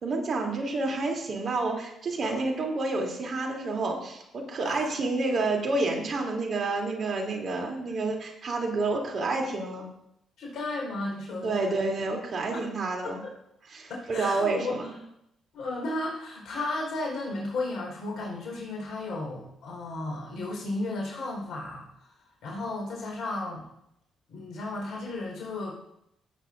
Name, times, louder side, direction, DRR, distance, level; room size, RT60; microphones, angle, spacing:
voice 1, 0.0-9.9 11.4-13.2 13.7-14.9, right 3 dB, 55° right, 1 dB, 3.2 m, -29 dB
voice 2, 10.4-11.9 12.5-12.7 13.0-13.3 13.9-14.9 15.5-21.9 22.4-23.7 24.3-25.7, left 2 dB, 65° left, -2 dB, 4.6 m, -34 dB
17.0 x 9.1 x 2.7 m, 0.78 s
hypercardioid pair, 50°, 0 cm